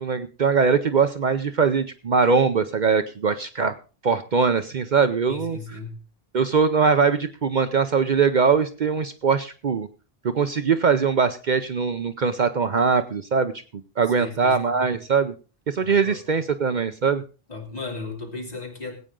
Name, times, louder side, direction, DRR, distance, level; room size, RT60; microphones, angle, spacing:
voice 1, 0.0-3.7 4.0-5.6 6.3-9.9 10.2-15.3 15.7-17.2, right 5 dB, 50° right, 10 dB, 0.8 m, -22 dB
voice 2, 5.3-6.0 14.1-14.6 15.8-16.2 17.5-19.0, left 3 dB, 40° left, 0 dB, 3.2 m, -35 dB
20.0 x 8.8 x 3.7 m, 0.35 s
omnidirectional pair, 1.0 m